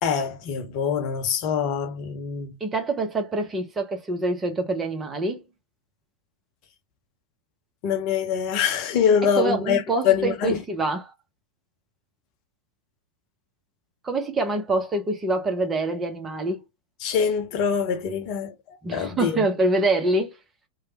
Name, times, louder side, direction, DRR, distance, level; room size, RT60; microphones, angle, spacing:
voice 1, 0.0-2.5 7.8-9.8 10.0-10.6 17.0-19.4, left 7 dB, 40° left, 0.7 m, -24 dB
voice 2, 2.6-5.4 9.2-11.1 14.0-16.6 18.8-20.4, right 2 dB, 20° right, 0.9 m, -25 dB
3.1 x 2.3 x 2.9 m
figure-of-eight pair, 90°, 0 cm